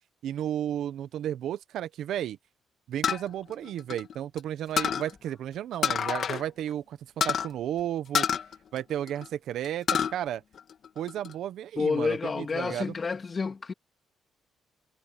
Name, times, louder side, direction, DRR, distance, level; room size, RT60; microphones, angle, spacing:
voice 1, 0.2-2.4 2.9-7.0 7.2-8.3 8.7-10.4 11.0-12.9, right 11 dB, 75° right, 1.1 m, -33 dB
sound 1, 3.0-4.4 4.8-5.1 5.8-6.4 6.7-6.8 7.2-7.5 8.1-9.3 9.6-10.1 10.6-11.3, left 7 dB, 60° left, 2.5 m, -28 dB
voice 2, 11.8-13.7, left 4 dB, 35° left, 2.6 m, -29 dB
cardioid pair, 90°, 0 cm